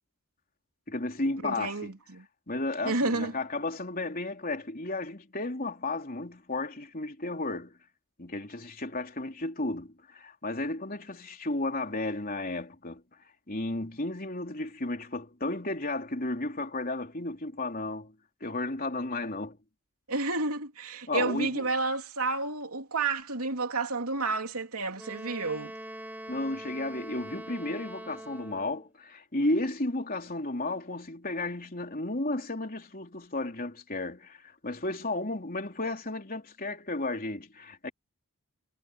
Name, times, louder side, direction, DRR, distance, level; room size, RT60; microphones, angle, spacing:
voice 1, 0.9-1.9 2.5-7.8 8.2-13.0 13.5-18.1 18.4-19.6 21.1-21.7 26.3-37.9, left 2 dB, 40° left, 3.7 m, -33 dB
voice 2, 1.4-2.2 2.8-3.4 20.1-25.7, right 3 dB, 75° right, 3.1 m, -30 dB
Wind instrument woodwind instrument, 25.0-28.9, right 1 dB, 10° right, 6.9 m, -43 dB
head